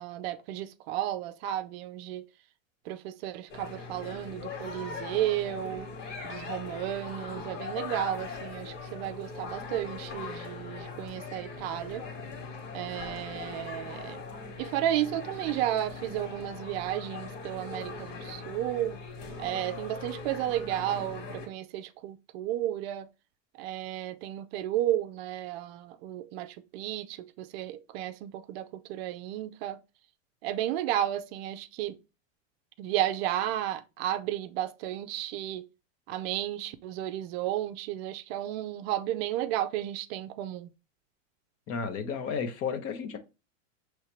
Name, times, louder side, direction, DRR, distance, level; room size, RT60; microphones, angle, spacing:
voice 1, 0.0-2.2 2.8-5.9 6.2-12.1 12.7-14.2 14.6-19.0 19.4-23.1 23.6-29.8 30.4-32.0 32.8-35.7 36.1-40.7, right 12 dB, 50° right, 0.5 m, -33 dB
sound 1, 3.5-21.5, left 4 dB, 65° left, 2.0 m, -40 dB
voice 2, 41.7-43.2, left 6 dB, 40° left, 0.9 m, -32 dB
5.5 x 3.2 x 2.9 m
supercardioid pair, 125°, 39 cm